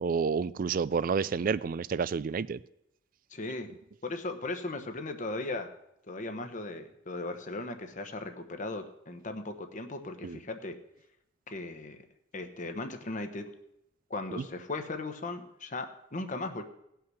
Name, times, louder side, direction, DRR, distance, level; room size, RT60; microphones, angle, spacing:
voice 1, 0.0-2.6 10.2-10.4 14.3-14.4, right 5 dB, 45° right, 0.3 m, -29 dB
voice 2, 3.3-3.7 4.0-5.7 6.1-10.7 11.5-12.0 12.3-13.5 14.1-16.6, left 2 dB, 40° left, 1.1 m, -37 dB
17.0 x 5.8 x 6.3 m
head